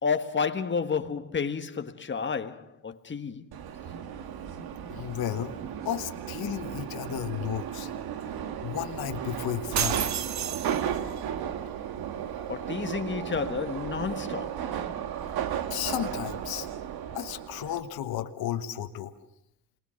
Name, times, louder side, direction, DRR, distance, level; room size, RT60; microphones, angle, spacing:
voice 1, 0.0-3.5 12.5-14.7, left 5 dB, 30° left, 1.6 m, -31 dB
Subway metro underground, 3.5-17.8, right 9 dB, 90° right, 1.5 m, -35 dB
voice 2, 4.9-5.6 5.8-7.9 8.6-10.1 15.7-16.7 17.1-19.1, left 11 dB, 80° left, 1.4 m, -33 dB
sound 1, 9.8-11.2, right 8 dB, 50° right, 1.0 m, -30 dB
28.0 x 20.5 x 6.5 m
cardioid pair, 105°, 36 cm